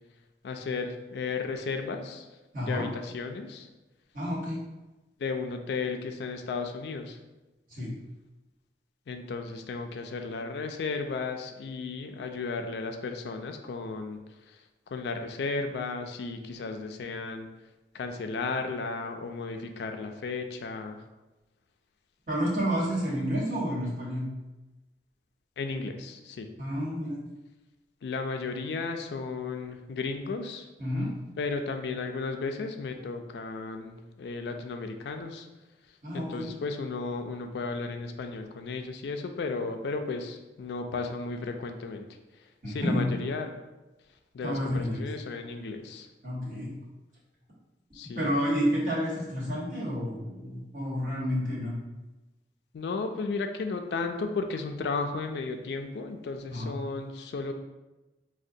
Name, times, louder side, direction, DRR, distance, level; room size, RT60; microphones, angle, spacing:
voice 1, 0.4-2.3 2.6-3.7 5.2-7.2 9.1-14.2 14.5-14.6 14.9-17.5 17.9-21.0 25.6-26.5 28.0-30.7 31.4-35.5 36.1-42.0 42.7-43.5 44.3-46.1 47.9-48.3 52.7-57.5, left 4 dB, 75° left, 5 dB, 0.3 m, -34 dB
voice 2, 2.5-2.8 4.1-4.6 7.7-7.9 22.3-24.3 26.6-27.2 30.8-31.1 36.0-36.5 42.6-43.0 44.4-45.0 46.2-46.7 48.0-51.7 56.5-56.8, equal, 50° right, -6 dB, 1.1 m, -30 dB
4.8 x 2.1 x 2.6 m, 1.1 s
head